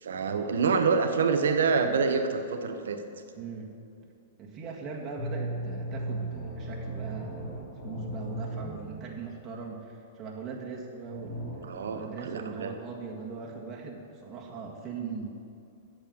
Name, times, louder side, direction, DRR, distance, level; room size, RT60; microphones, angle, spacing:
voice 1, 0.0-3.0 11.6-12.7, right 5 dB, 80° right, 7 dB, 1.0 m, -26 dB
voice 2, 3.3-3.7 4.4-15.3, right 5 dB, 30° right, -2 dB, 1.7 m, -40 dB
sound 1, 5.2-9.4 11.1-11.6, right 1 dB, 40° left, 2.9 m, -36 dB
8.8 x 7.0 x 7.4 m, 2.5 s
hypercardioid pair, 125°, 0 cm